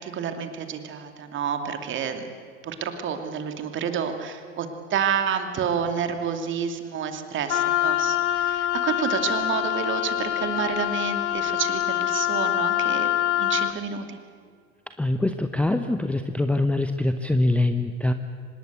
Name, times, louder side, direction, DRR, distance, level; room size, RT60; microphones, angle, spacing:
voice 1, 0.0-2.3 2.6-13.1 13.3-14.1, right 7 dB, 30° right, 6 dB, 2.6 m, -29 dB
Wind instrument woodwind instrument, 7.5-13.8, left 12 dB, 65° left, 1.2 m, -25 dB
voice 2, 15.0-18.1, left 2 dB, 5° left, 8 dB, 0.8 m, -23 dB
25.0 x 20.5 x 8.2 m, 2.1 s
figure-of-eight pair, 85°, 37 cm